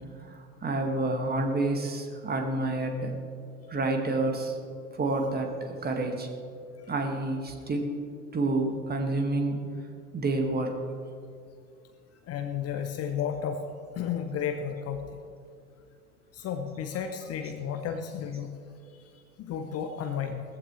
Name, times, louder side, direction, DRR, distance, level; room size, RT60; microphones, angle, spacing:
voice 1, 0.2-3.2 3.7-4.6 4.9-6.3 6.9-7.9 8.3-9.6 10.1-10.8, right 2 dB, 20° right, 4 dB, 1.9 m, -29 dB
voice 2, 12.3-13.6 13.9-15.2 16.3-18.5 19.4-20.4, left 8 dB, 30° left, 6 dB, 0.9 m, -32 dB
18.5 x 14.5 x 3.2 m, 2.4 s
figure-of-eight pair, 75°, 45 cm